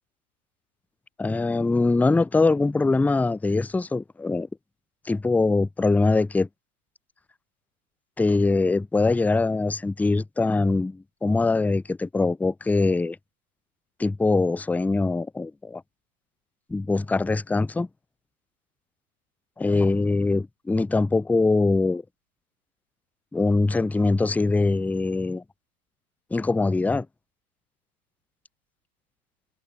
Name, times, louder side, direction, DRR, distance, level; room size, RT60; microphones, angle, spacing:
voice 1, 1.2-4.5 5.1-6.5 8.2-13.2 14.0-15.8 16.7-17.9 19.6-22.0 23.3-25.4 26.3-27.1, left 3 dB, 5° left, 0.7 m, -23 dB
hypercardioid pair, 125°, 45 cm